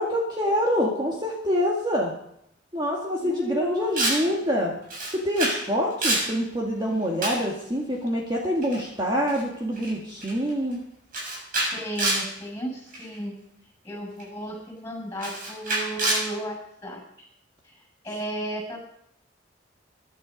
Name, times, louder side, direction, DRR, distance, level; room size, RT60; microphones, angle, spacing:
voice 1, 0.0-2.1 2.7-4.7 5.1-10.8, equal, 25° right, -2 dB, 2.0 m, -26 dB
voice 2, 3.2-3.9 4.2-4.4 11.7-13.3 13.8-16.6 16.8-17.0 17.6-17.7 18.0-18.8, right 1 dB, 15° left, 2 dB, 7.0 m, -34 dB
Camera, 4.0-4.3 4.9-5.6 5.9-6.3 7.2-7.5 8.6-8.8 9.3-9.4 9.8-9.9 10.2-10.5 11.1-12.3 12.9-13.2 14.2-14.3 15.2-16.3, right 2 dB, 45° right, 6.9 m, -27 dB
21.5 x 11.5 x 5.2 m, 0.77 s
head